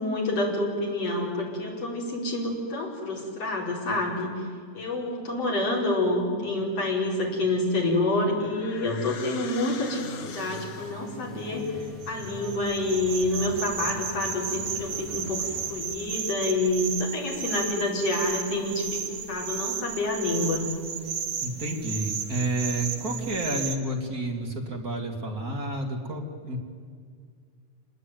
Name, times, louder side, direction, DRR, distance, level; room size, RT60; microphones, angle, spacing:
voice 1, 0.0-4.3 4.7-11.8 12.1-20.7, left 2 dB, 50° left, -2 dB, 5.8 m, -28 dB
sound 1, 7.8-11.2, left 7 dB, 80° left, 3.1 m, -42 dB
sound 2, 9.8-15.8, left 1 dB, ahead, 7.8 m, -43 dB
sound 3, 11.5-23.8, right 7 dB, 80° right, 3.1 m, -34 dB
voice 2, 21.4-26.6, right 1 dB, 30° right, 1 dB, 2.9 m, -30 dB
27.0 x 20.5 x 9.5 m, 2.1 s
omnidirectional pair, 3.5 m